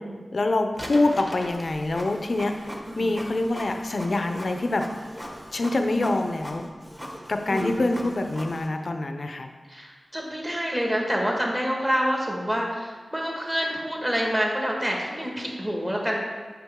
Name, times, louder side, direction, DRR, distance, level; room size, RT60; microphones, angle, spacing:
voice 1, 0.3-4.8 5.5-6.7 7.3-9.5, left 2 dB, 65° left, 6 dB, 0.5 m, -25 dB
Printer, 0.7-8.7, equal, 5° right, 1.0 m, -40 dB
voice 2, 7.5-7.9 9.7-16.2, equal, 20° right, -1 dB, 1.5 m, -27 dB
6.0 x 5.0 x 3.6 m, 1.4 s
cardioid pair, 45°, 0 cm